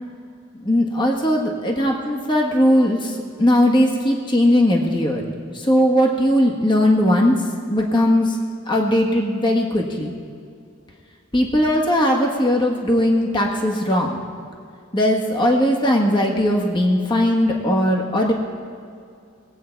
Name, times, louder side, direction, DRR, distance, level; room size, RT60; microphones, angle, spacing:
voice 1, 0.5-5.2 5.5-7.4 7.7-8.4 8.7-10.1 11.3-14.2 14.9-18.3, left 1 dB, 25° left, 0 dB, 1.5 m, -19 dB
21.0 x 8.5 x 4.6 m, 2.4 s
head